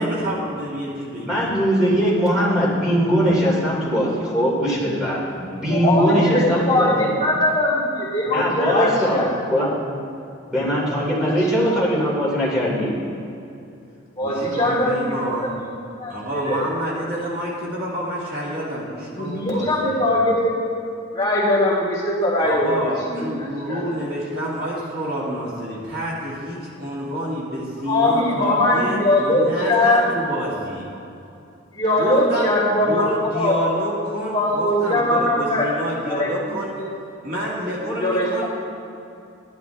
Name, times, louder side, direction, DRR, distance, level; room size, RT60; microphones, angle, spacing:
voice 1, 0.0-1.5 14.2-15.5 16.1-20.0 22.4-30.9 32.0-32.5 32.8-36.7 37.2-38.4, equal, 45° right, -6 dB, 2.2 m, -28 dB
voice 2, 1.2-7.1 8.3-9.7 10.5-12.9, equal, 5° right, -7 dB, 2.9 m, -21 dB
voice 3, 5.7-9.3 11.2-11.3 14.2-15.5 16.0-16.6 19.1-20.6 21.1-22.8 23.1-23.8 27.8-30.0 31.7-33.6 34.3-35.7 36.1-36.3 36.8-36.9 37.8-38.5, left 1 dB, 20° left, -9 dB, 3.2 m, -21 dB
13.5 x 12.0 x 3.5 m, 2.6 s
head